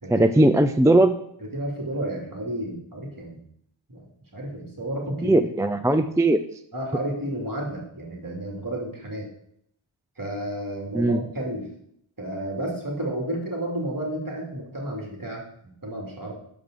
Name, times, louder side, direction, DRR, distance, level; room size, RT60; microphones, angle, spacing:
voice 1, 0.1-1.1 5.2-6.4 10.9-11.2, right 1 dB, 5° right, 9 dB, 0.4 m, -19 dB
voice 2, 1.5-3.4 3.9-4.1 4.3-5.4 6.7-9.3 10.2-11.7 12.2-15.4 15.8-16.3, right 1 dB, 45° right, 0 dB, 2.4 m, -31 dB
6.1 x 5.1 x 6.7 m, 0.71 s
wide cardioid pair, 45°, 47 cm